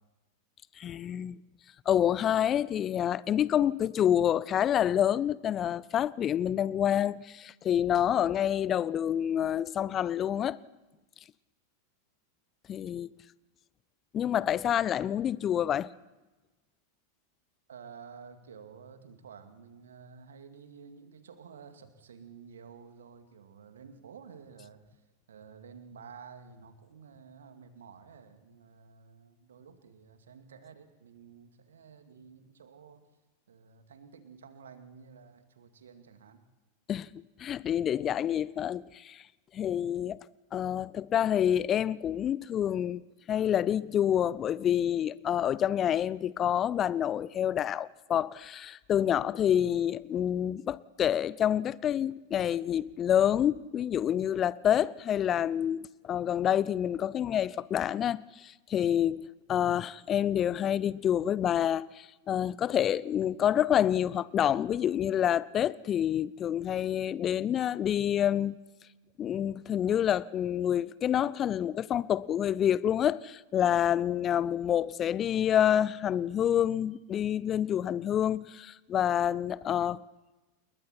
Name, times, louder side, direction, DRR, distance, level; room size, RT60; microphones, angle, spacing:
voice 1, 0.8-1.4 1.9-10.6 12.7-13.1 14.1-15.9 36.9-37.1 37.4-39.2 39.5-40.2 40.5-68.6 69.2-80.0, left 10 dB, 30° left, 0.7 m, -28 dB
voice 2, 17.7-25.0 25.3-33.1 33.5-36.4, right 6 dB, 65° right, 2.4 m, -51 dB
28.5 x 22.0 x 4.4 m
figure-of-eight pair, 90°, 0 cm